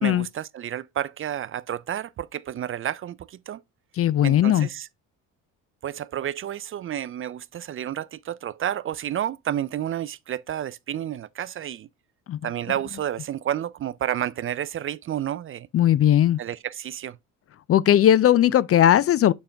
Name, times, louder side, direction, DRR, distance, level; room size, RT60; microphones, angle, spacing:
voice 1, 0.0-3.6 4.2-4.9 5.8-11.9 12.4-15.7 16.4-17.2, right 10 dB, 40° right, 0.4 m, -30 dB
voice 2, 4.0-4.7 12.3-12.4 15.7-16.4 17.7-19.3, left 11 dB, 40° left, 0.4 m, -18 dB
6.7 x 5.2 x 3.4 m
supercardioid pair, 70°, 35 cm